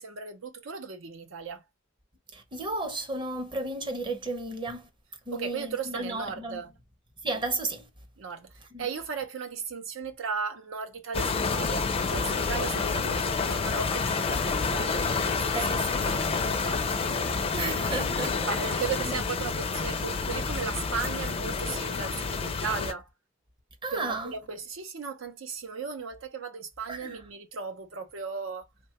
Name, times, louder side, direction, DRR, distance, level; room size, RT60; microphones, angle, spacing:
voice 1, 0.0-1.6 5.3-6.7 8.2-8.5 8.8-16.8 18.5-23.1 23.9-28.7, right 5 dB, 85° right, 0.6 m, -36 dB
voice 2, 2.3-4.9 5.3-6.6 7.2-7.9 8.7-8.8 12.5-12.6 13.6-13.7 15.5-16.4 17.5-18.5 19.0-19.1 23.8-24.3 26.9-27.2, right 2 dB, 25° right, 0.7 m, -34 dB
sound 1, 11.1-22.9, left 4 dB, 30° left, 0.4 m, -29 dB
3.0 x 2.2 x 2.8 m
head